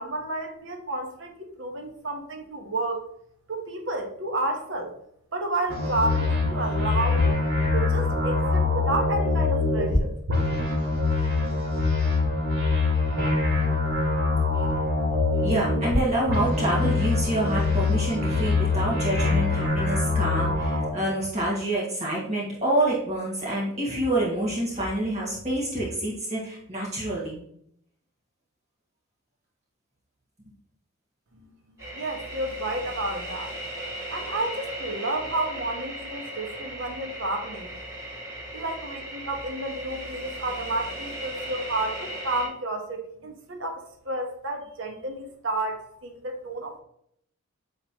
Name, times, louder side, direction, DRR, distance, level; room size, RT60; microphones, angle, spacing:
voice 1, 0.0-3.1 3.5-4.9 5.3-7.3 7.7-10.1 31.3-31.5 31.9-33.5 34.1-37.7 38.5-46.8, right 2 dB, 60° right, 1.2 m, -31 dB
sound 1, 5.7-10.0 10.3-16.0 16.3-20.9, left 3 dB, 80° right, 2.7 m, -24 dB
voice 2, 15.3-27.4 40.3-40.4, right 1 dB, 30° right, 2.1 m, -27 dB
sound 2, 31.8-42.5, right 1 dB, 15° right, 2.6 m, -37 dB
9.0 x 3.9 x 3.0 m
head